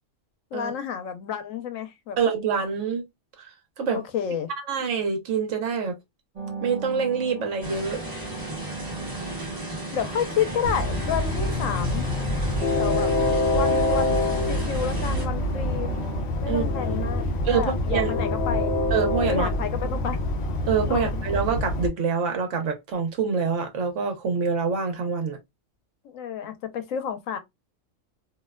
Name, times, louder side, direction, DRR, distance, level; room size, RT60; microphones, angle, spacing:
voice 1, 0.5-2.2 3.9-4.5 9.9-12.1 12.8-13.1 13.5-14.2 14.5-16.0 16.4-17.2 17.5-18.7 19.2-20.2 20.9-21.2 26.0-27.4, left 8 dB, 90° left, 1.0 m, -30 dB
voice 2, 2.2-3.0 3.4-3.5 3.8-4.0 4.7-6.0 6.6-8.0 16.5-17.0 17.4-18.1 18.9-19.5 20.7-25.4, right 6 dB, 70° right, 1.1 m, -26 dB
sound 1, 6.4-16.2, right 4 dB, 40° right, 0.6 m, -38 dB
sound 2, 7.6-15.2, right 1 dB, 20° right, 0.9 m, -36 dB
Train, 10.6-21.9, left 2 dB, 65° left, 0.8 m, -26 dB
2.7 x 2.1 x 2.2 m
omnidirectional pair, 1.3 m